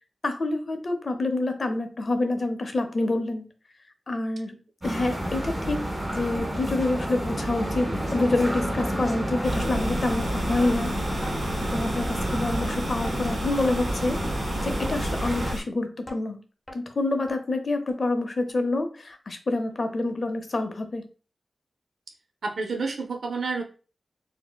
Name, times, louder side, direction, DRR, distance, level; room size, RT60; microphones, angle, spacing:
voice 1, 0.2-3.5 4.1-5.8 6.1-11.0 11.7-14.2 14.6-16.4 16.7-21.1, left 2 dB, 55° left, 6 dB, 0.6 m, -27 dB
sound 1, 4.8-15.5, equal, 20° right, 1.6 m, -30 dB
sound 2, 6.4-6.5 7.0-7.1 7.6-7.7 8.2-8.3 8.8-8.9 9.4-9.5 10.0-10.1 10.6-10.7 11.2-11.4 11.8-12.0 12.4-12.5 13.0-13.2 13.6-13.8 14.2-14.4 14.9-15.0 15.5-15.6 16.1-16.2 16.7-16.8 17.3-17.4 17.9-18.0 18.5-18.6 19.1-19.2, left 1 dB, 15° left, 0.7 m, -40 dB
sound 3, 9.4-15.6, equal, 65° right, 1.3 m, -33 dB
voice 2, 22.4-23.6, right 4 dB, 90° right, 2 dB, 0.5 m, -29 dB
4.3 x 2.0 x 2.2 m, 0.35 s
wide cardioid pair, 70°, 0 cm